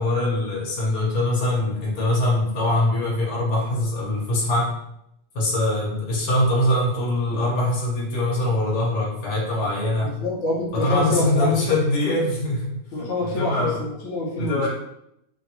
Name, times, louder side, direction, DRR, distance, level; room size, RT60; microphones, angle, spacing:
voice 1, 0.0-4.8 5.3-10.1 10.7-13.8 14.4-14.7, left 1 dB, 90° left, -5 dB, 1.4 m, -23 dB
voice 2, 10.0-11.5 12.9-14.6, left 1 dB, 65° left, -3 dB, 1.0 m, -26 dB
3.0 x 2.5 x 2.8 m, 0.78 s
omnidirectional pair, 1.6 m